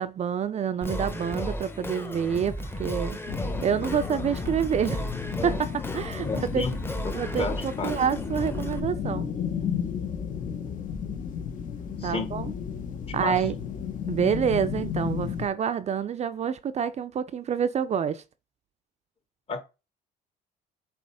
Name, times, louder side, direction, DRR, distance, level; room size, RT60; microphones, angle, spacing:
voice 1, 0.0-3.2 3.6-5.1 5.4-6.6 7.1-9.3 12.0-12.5 13.1-13.6 14.1-18.2, right 7 dB, 40° right, 0.6 m, -27 dB
Singing, 0.8-8.8, left 1 dB, 15° left, 1.1 m, -34 dB
sound 1, 3.3-15.5, left 7 dB, 50° left, 1.4 m, -33 dB
voice 2, 6.2-6.7 7.3-8.0 12.0-12.3 13.2-13.4 19.5-19.6, left 4 dB, 35° left, 1.7 m, -31 dB
8.0 x 3.1 x 4.9 m
cardioid pair, 110°, 17 cm